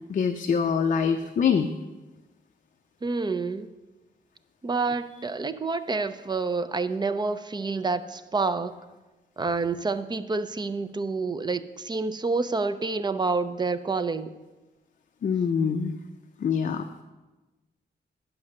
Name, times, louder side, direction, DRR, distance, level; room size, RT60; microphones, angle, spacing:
voice 1, 0.1-1.7 15.2-15.9 16.4-16.9, left 6 dB, 50° left, 7 dB, 0.4 m, -24 dB
voice 2, 3.0-3.7 4.6-8.8 9.4-14.4, right 4 dB, 25° right, 12 dB, 0.4 m, -28 dB
9.6 x 6.0 x 6.4 m, 1.2 s
wide cardioid pair, 145°, 18 cm